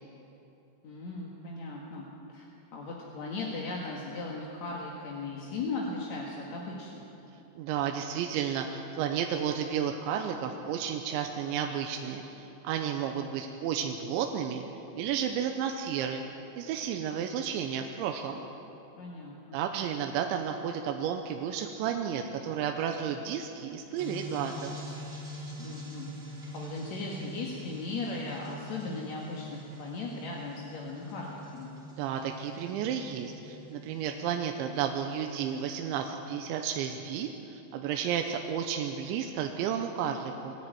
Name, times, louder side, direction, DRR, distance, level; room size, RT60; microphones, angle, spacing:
voice 1, 0.8-2.1 2.3-2.5 2.7-7.1 19.0-19.6 25.6-26.1 26.5-31.7, left 3 dB, 50° left, -3 dB, 2.3 m, -37 dB
voice 2, 7.6-14.6 15.0-16.2 16.6-18.4 19.5-24.8 32.0-40.5, right 8 dB, 85° right, 4 dB, 3.2 m, -32 dB
sound 1, 24.0-36.1, left 1 dB, 15° right, 3.4 m, -44 dB
22.0 x 14.0 x 9.3 m, 2.9 s
omnidirectional pair, 5.2 m